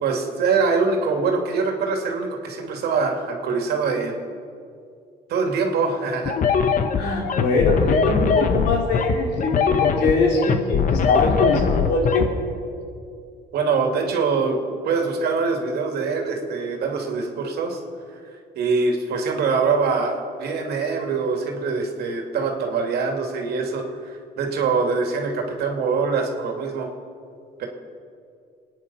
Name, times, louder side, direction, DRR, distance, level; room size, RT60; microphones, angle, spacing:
voice 1, 0.0-4.2 5.3-6.4 13.5-14.6 14.8-17.8 18.6-26.9 27.6-27.7, right 4 dB, 70° right, 2 dB, 2.5 m, -24 dB
sound 1, 6.3-12.3, left 6 dB, 50° left, 1.2 m, -21 dB
voice 2, 7.0-12.3, left 3 dB, 80° left, 0 dB, 3.4 m, -22 dB
25.0 x 9.7 x 5.6 m, 2.4 s
cardioid pair, 110°, 17 cm